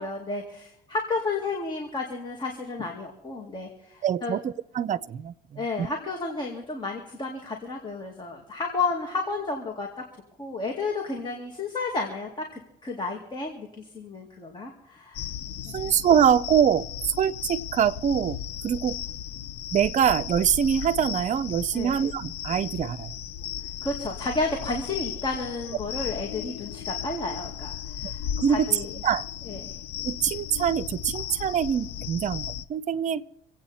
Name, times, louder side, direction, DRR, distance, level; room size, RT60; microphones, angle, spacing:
voice 1, 0.0-4.4 5.6-9.9 10.4-15.2 15.7-15.9 21.7-22.0 23.8-28.2 28.5-28.9 29.4-29.7, left 3 dB, 25° left, 2.4 m, -32 dB
voice 2, 4.0-5.9 15.7-16.8 17.2-18.4 18.6-19.0 19.7-23.1 28.4-28.7 29.0-29.2 30.0-33.2, right 8 dB, 45° right, 0.6 m, -24 dB
sound 1, 15.1-32.6, left 10 dB, 75° left, 0.7 m, -36 dB
26.5 x 8.9 x 4.3 m
cardioid pair, 110°, 17 cm